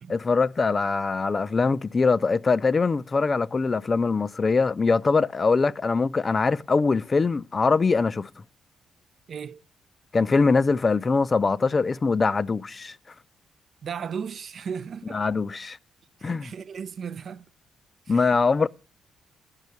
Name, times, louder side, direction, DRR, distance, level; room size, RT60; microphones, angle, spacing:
voice 1, 0.1-8.3 10.1-12.9 15.1-15.8 16.2-16.5 18.1-18.7, left 4 dB, 30° left, 0.4 m, -22 dB
voice 2, 9.3-9.6 13.8-15.2 16.2-17.4 18.1-18.4, right 7 dB, 50° right, 0.4 m, -36 dB
10.5 x 5.4 x 8.1 m
cardioid pair, 90°, 0 cm